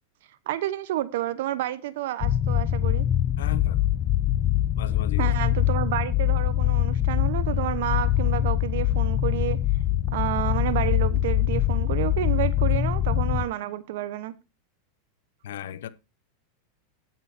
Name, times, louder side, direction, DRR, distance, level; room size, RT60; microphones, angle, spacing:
voice 1, 0.5-3.1 5.2-9.6 10.1-14.3, right 13 dB, 70° right, 1.1 m, -30 dB
sound 1, 2.2-13.4, left 12 dB, 40° left, 0.6 m, -23 dB
voice 2, 3.4-3.8 4.7-5.3 15.4-15.9, left 11 dB, 80° left, 1.0 m, -36 dB
9.0 x 8.7 x 4.3 m
hypercardioid pair, 115°, 0 cm